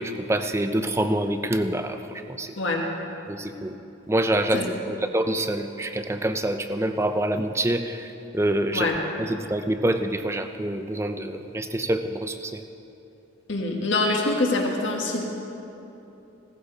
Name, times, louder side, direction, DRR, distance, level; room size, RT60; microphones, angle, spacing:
voice 1, 0.0-2.5 3.3-3.8 4.1-8.9 9.2-12.6, right 1 dB, 15° right, 7 dB, 0.5 m, -26 dB
voice 2, 2.6-2.9 4.5-4.7 8.7-9.0 13.5-15.2, left 2 dB, 75° left, 0 dB, 1.7 m, -24 dB
17.5 x 14.5 x 4.1 m, 3.0 s
head